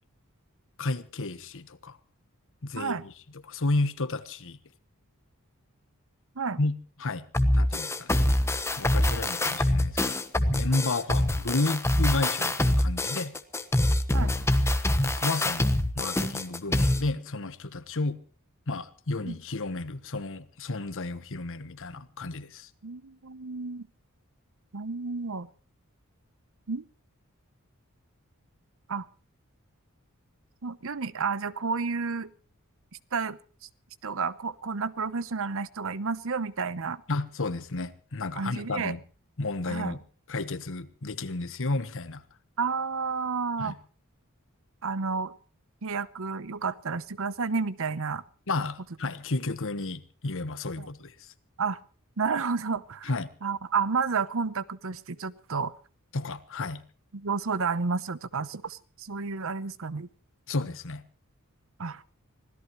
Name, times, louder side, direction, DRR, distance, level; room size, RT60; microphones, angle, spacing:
voice 1, 0.8-2.0 2.6-3.1 3.5-4.6 6.6-6.7 7.0-7.3 7.5-8.1 8.8-10.1 10.5-13.3 15.0-18.2 18.7-22.7 37.1-39.0 39.4-40.0 40.3-42.2 43.6-43.8 48.5-51.3 53.0-53.3 56.1-56.8 60.5-61.0, left 2 dB, 65° left, 1.2 m, -32 dB
sound 1, 7.3-17.0, left 1 dB, 10° left, 1.1 m, -25 dB
voice 2, 22.8-23.9 24.7-25.5 26.7-26.8 28.9-29.1 30.6-32.3 33.1-33.4 34.0-37.0 38.4-39.0 39.7-40.0 42.6-43.8 44.8-45.3 45.8-48.2 50.8-50.9 51.6-51.8 52.2-53.1 53.4-55.7 57.1-60.1 61.8-62.0, right 5 dB, 65° right, 0.9 m, -31 dB
25.5 x 17.0 x 3.1 m
head